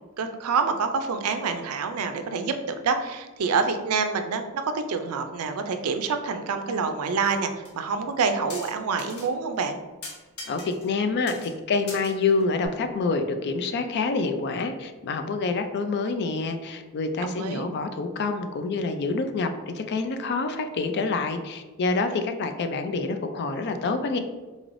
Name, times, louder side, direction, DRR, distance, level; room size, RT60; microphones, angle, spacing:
voice 1, 0.2-9.8 17.2-17.7, right 5 dB, 80° right, 7 dB, 0.4 m, -27 dB
sound 1, 7.0-7.4 7.6-7.7 8.5-9.3 9.6-9.7 10.0-11.0 11.3-11.5 11.9-12.7, left 3 dB, 85° left, 0.9 m, -41 dB
voice 2, 10.5-24.2, left 3 dB, 50° left, 7 dB, 0.3 m, -27 dB
4.0 x 3.1 x 2.5 m, 1.2 s
head